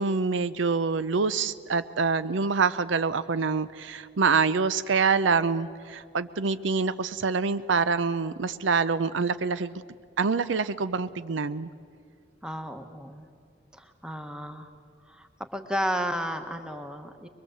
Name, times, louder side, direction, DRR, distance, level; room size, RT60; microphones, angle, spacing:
voice 1, 0.0-9.8 10.2-11.7, right 4 dB, 80° right, 14 dB, 0.6 m, -26 dB
voice 2, 12.4-13.3 13.7-14.7 15.0-17.3, equal, 5° right, 7 dB, 1.2 m, -33 dB
22.5 x 22.5 x 7.8 m, 2.2 s
head